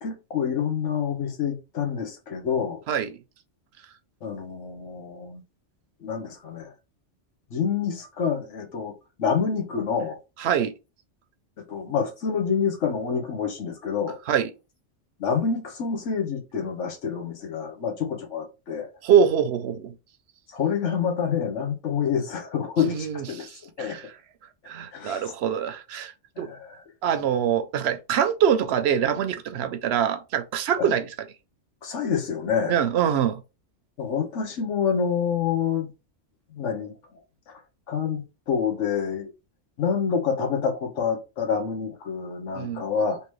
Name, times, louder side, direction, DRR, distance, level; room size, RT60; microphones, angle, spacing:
voice 1, 0.0-2.8 4.2-5.4 6.0-6.7 7.5-8.9 9.2-10.2 11.7-14.2 15.2-18.9 20.5-23.5 23.8-24.0 24.9-25.3 26.4-26.7 30.8-30.9 31.8-32.7 34.0-35.9 36.5-36.9 37.5-37.6 37.9-39.3 39.8-43.2, left 6 dB, 90° left, 1.3 m, -27 dB
voice 2, 2.9-3.2 10.4-10.7 14.3-14.5 19.0-19.9 22.8-24.1 24.7-26.5 27.0-31.0 32.7-33.4 42.6-42.8, right 8 dB, 70° right, 0.8 m, -24 dB
3.5 x 2.9 x 3.0 m
omnidirectional pair, 1.2 m